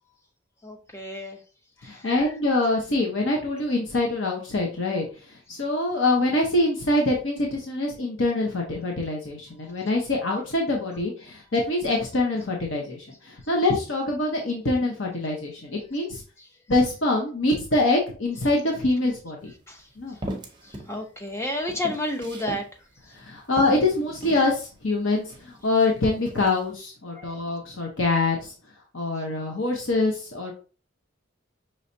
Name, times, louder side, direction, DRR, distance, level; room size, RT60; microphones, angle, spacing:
voice 1, 0.6-1.4 1.8-2.3 16.4-16.5 19.7-20.3 20.6-23.2 27.1-27.4 29.2-29.3, left 1 dB, 15° left, 0.7 m, -33 dB
voice 2, 1.8-5.1 5.5-16.2 16.7-19.5 20.0-20.2 23.1-28.5 28.9-30.5, left 2 dB, 70° left, 1.0 m, -24 dB
sound 1, 19.4-19.5 20.2-20.9 21.3-22.7 23.1-23.2 23.6-24.5 25.2-25.9 26.2-26.6, right 1 dB, 25° right, 0.7 m, -37 dB
5.5 x 3.2 x 2.7 m
head